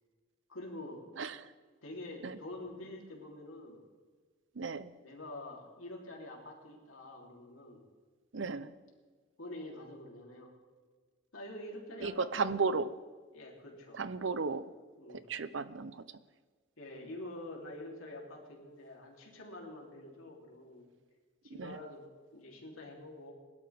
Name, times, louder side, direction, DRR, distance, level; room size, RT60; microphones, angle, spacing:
voice 1, 0.5-1.1 1.8-3.8 5.0-7.8 9.4-10.5 11.3-12.4 13.3-14.0 15.0-15.3 16.8-20.9 21.4-22.0 22.3-23.3, left 1 dB, 90° left, -1 dB, 3.4 m, -46 dB
voice 2, 1.2-1.5 2.2-2.4 4.6-4.9 8.3-8.7 12.0-12.9 13.9-14.7 15.1-16.0 21.5-21.8, right 4 dB, 65° right, 14 dB, 0.6 m, -35 dB
22.0 x 12.5 x 3.6 m, 1.5 s
head